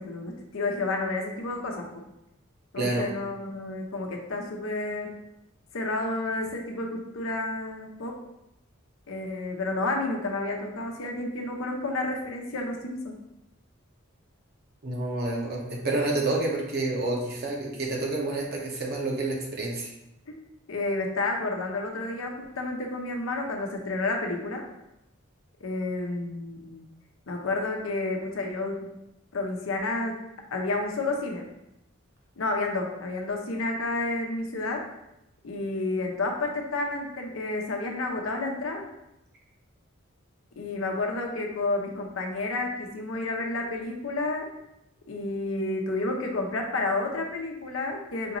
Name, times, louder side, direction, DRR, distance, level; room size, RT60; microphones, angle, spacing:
voice 1, 0.0-2.0 2.7-5.1 5.7-8.2 9.1-13.2 20.3-20.4 20.7-24.7 25.6-26.9 27.3-29.0 29.3-30.2 30.5-31.5 32.4-34.8 35.4-38.9 40.6-44.5 45.1-48.4, left 2 dB, 90° left, 2 dB, 0.7 m, -30 dB
voice 2, 2.8-3.1 14.8-19.9, right 2 dB, 50° right, -1 dB, 0.9 m, -29 dB
5.1 x 2.5 x 3.0 m, 0.87 s
head